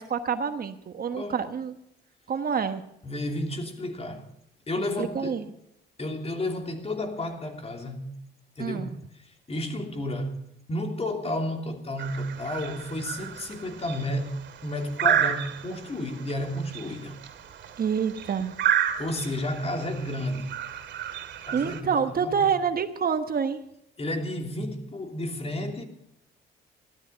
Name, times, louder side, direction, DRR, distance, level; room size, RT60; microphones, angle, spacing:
voice 1, 0.0-1.7 2.3-2.8 5.0-5.5 8.6-9.0 17.8-18.6 21.5-23.6, right 6 dB, 50° right, 1.2 m, -27 dB
voice 2, 3.0-4.2 4.7-5.4 6.0-8.1 8.6-9.0 9.2-14.3 14.6-17.1 19.0-20.5 21.5-22.4 24.0-25.8, left 1 dB, 30° left, 3.1 m, -32 dB
sound 1, 12.0-21.8, right 9 dB, 65° right, 2.7 m, -31 dB
15.5 x 13.0 x 5.7 m
cardioid pair, 90°, 20 cm